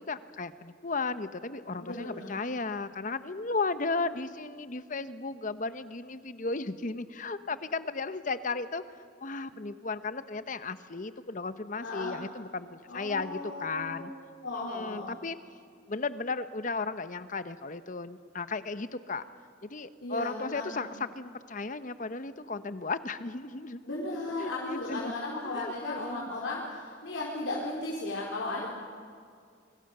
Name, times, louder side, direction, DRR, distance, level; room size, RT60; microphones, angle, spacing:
voice 1, 0.0-8.8 9.2-14.1 14.7-15.4 15.9-19.2 19.6-23.8 24.4-25.1 25.4-26.3 28.5-28.7, left 3 dB, 45° left, 12 dB, 0.9 m, -35 dB
voice 2, 1.8-2.3 11.8-12.1 12.9-14.1 14.4-15.1 20.0-20.7 23.8-28.7, left 2 dB, 80° left, -5 dB, 4.7 m, -35 dB
28.5 x 25.0 x 6.8 m, 2.2 s
head